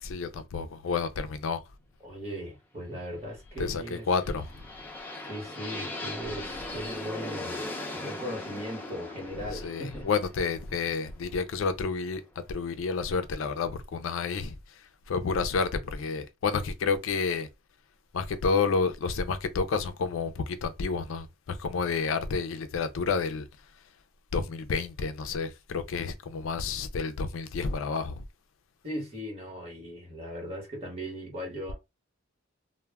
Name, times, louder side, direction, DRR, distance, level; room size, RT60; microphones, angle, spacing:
voice 1, 0.0-1.6 3.6-4.7 9.5-12.2 12.5-17.5 18.1-23.5 24.3-28.2, left 5 dB, 65° left, 0.4 m, -30 dB
voice 2, 2.0-4.0 5.3-7.6 7.9-10.1 28.8-31.7, equal, 30° right, 1.1 m, -38 dB
sound 1, 4.0-11.9, left 2 dB, 10° left, 0.6 m, -39 dB
2.2 x 2.1 x 3.3 m
head